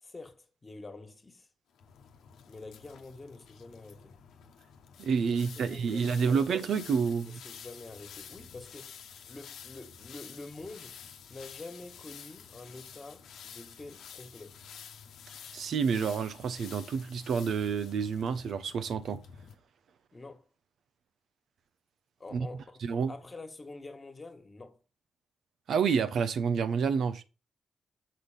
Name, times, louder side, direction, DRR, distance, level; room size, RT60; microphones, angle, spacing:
voice 1, 0.0-1.5 2.5-4.2 5.3-6.5 7.2-11.0 11.3-14.6 20.1-20.5 22.2-22.8 23.1-24.8, left 3 dB, 35° left, 1.7 m, -47 dB
sound 1, 1.7-19.5, left 7 dB, 85° left, 1.0 m, -50 dB
voice 2, 5.0-7.4 15.5-19.2 22.3-22.5 22.8-23.1 25.7-27.2, right 6 dB, 75° right, 0.7 m, -29 dB
6.6 x 4.1 x 5.1 m
supercardioid pair, 60°, 0 cm